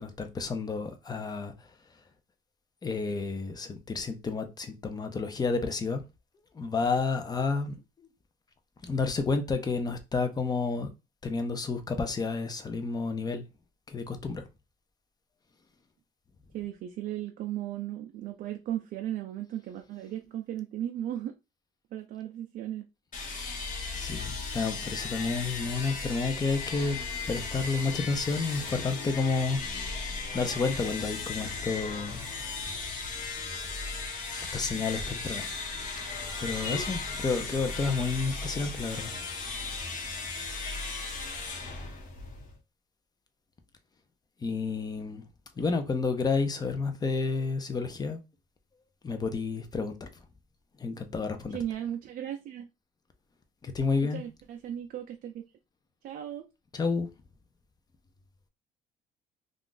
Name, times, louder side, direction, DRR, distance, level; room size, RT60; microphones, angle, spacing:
voice 1, 0.0-1.7 2.8-6.0 6.5-8.1 8.8-10.9 11.2-13.4 13.9-14.5 23.9-27.0 27.3-29.6 30.3-32.2 34.5-35.5 36.4-39.2 44.4-45.3 45.6-48.2 49.0-50.1 50.8-51.6 53.6-54.2 56.7-57.1, left 4 dB, 25° left, 0.6 m, -30 dB
voice 2, 16.5-21.3 21.9-22.9 51.5-52.7 54.1-55.4 56.0-56.5, right 11 dB, 60° right, 0.5 m, -36 dB
sound 1, 23.1-42.6, left 4 dB, 50° left, 1.0 m, -36 dB
2.5 x 2.4 x 3.8 m
cardioid pair, 110°, 17 cm